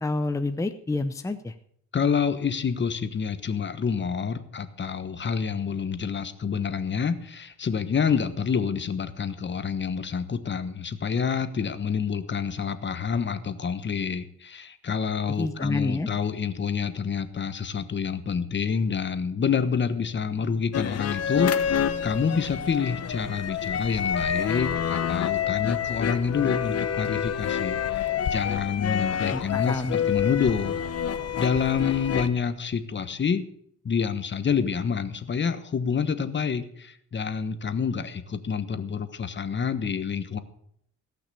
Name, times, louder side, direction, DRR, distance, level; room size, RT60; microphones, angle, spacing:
voice 1, 0.0-1.5 15.4-16.1 29.3-30.0, left 2 dB, 10° left, 8 dB, 0.7 m, -28 dB
voice 2, 1.9-30.8 31.4-33.4 33.8-40.4, left 6 dB, 40° left, 11 dB, 1.2 m, -28 dB
sound 1, 20.7-32.3, left 8 dB, 55° left, 1.0 m, -28 dB
17.0 x 6.0 x 8.4 m, 0.69 s
cardioid pair, 90°, 30 cm